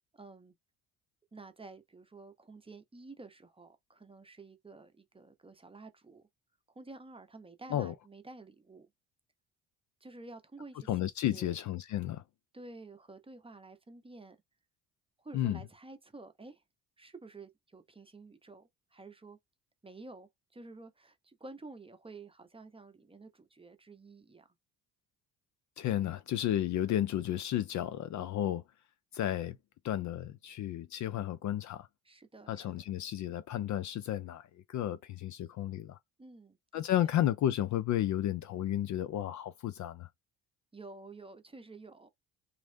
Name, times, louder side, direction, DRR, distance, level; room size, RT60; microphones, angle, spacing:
voice 1, 0.1-0.5 1.3-6.3 6.8-8.9 10.0-10.9 11.2-11.6 12.5-14.4 15.2-16.6 17.0-19.4 19.8-24.5 32.0-32.7 36.2-36.6 37.0-37.1 40.7-42.1, right 3 dB, 15° right, 0.7 m, -51 dB
voice 2, 10.9-12.2 15.3-15.6 25.8-28.6 29.1-29.6 29.8-31.9 32.5-36.0 36.7-40.1, left 12 dB, 45° left, 0.4 m, -32 dB
3.0 x 2.5 x 2.6 m
hypercardioid pair, 60°, 41 cm